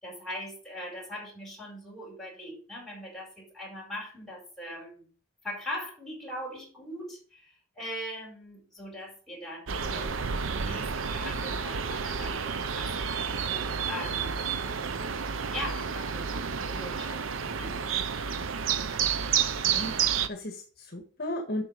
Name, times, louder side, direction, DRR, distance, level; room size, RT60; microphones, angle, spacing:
voice 1, 0.0-5.1 5.4-13.1 13.4-14.7 15.5-16.3 16.6-17.9, equal, ahead, -4 dB, 5.0 m, -41 dB
sound 1, 9.7-20.3, right 6 dB, 85° right, 0.7 m, -30 dB
voice 2, 19.7-21.6, left 1 dB, 50° left, 3 dB, 1.5 m, -35 dB
8.4 x 6.2 x 5.4 m, 0.41 s
head